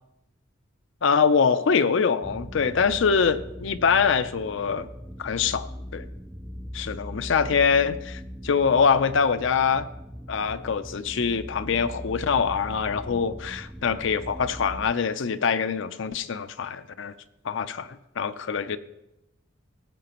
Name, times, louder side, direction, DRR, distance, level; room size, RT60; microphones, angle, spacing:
voice 1, 1.0-4.9 5.2-5.7 5.9-6.0 6.7-9.9 10.3-17.1 17.4-17.9 18.2-18.8, left 6 dB, 65° left, 0.5 m, -24 dB
sound 1, 2.2-14.9, equal, ahead, 0.4 m, -40 dB
16.5 x 7.6 x 3.0 m
head